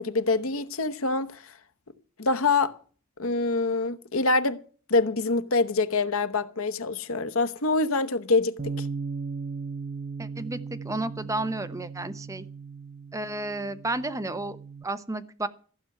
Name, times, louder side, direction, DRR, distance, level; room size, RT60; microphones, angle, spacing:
voice 1, 0.0-1.4 2.2-2.7 3.2-4.6 4.9-8.9, left 3 dB, 85° left, 1.1 m, -25 dB
Bass guitar, 8.6-14.8, right 5 dB, 45° right, 0.8 m, -37 dB
voice 2, 10.2-10.6 10.8-12.4 13.1-14.6 14.8-15.5, right 2 dB, 15° right, 0.9 m, -32 dB
14.5 x 6.1 x 9.0 m
head